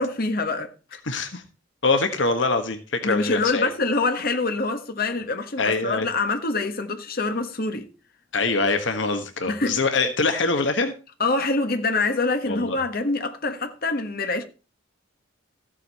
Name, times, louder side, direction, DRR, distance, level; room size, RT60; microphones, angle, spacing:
voice 1, 0.0-1.0 3.0-7.9 9.5-9.8 11.2-14.4, left 3 dB, 50° left, 1.5 m, -25 dB
voice 2, 1.0-1.4 1.8-3.7 5.6-6.1 8.3-10.9 12.5-12.8, left 3 dB, 70° left, 1.3 m, -24 dB
14.5 x 7.6 x 4.2 m
head